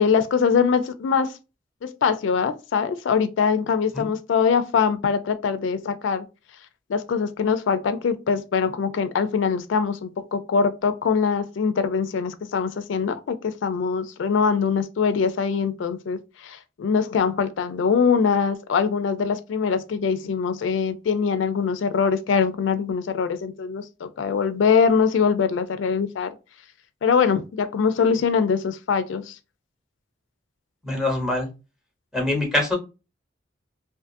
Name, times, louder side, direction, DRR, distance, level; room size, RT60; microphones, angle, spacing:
voice 1, 0.0-1.4 1.8-6.3 6.9-26.3 27.0-29.4, left 6 dB, 80° left, 0.4 m, -23 dB
voice 2, 30.8-31.5 32.1-32.8, left 2 dB, 5° right, 0.8 m, -24 dB
2.5 x 2.4 x 2.5 m
head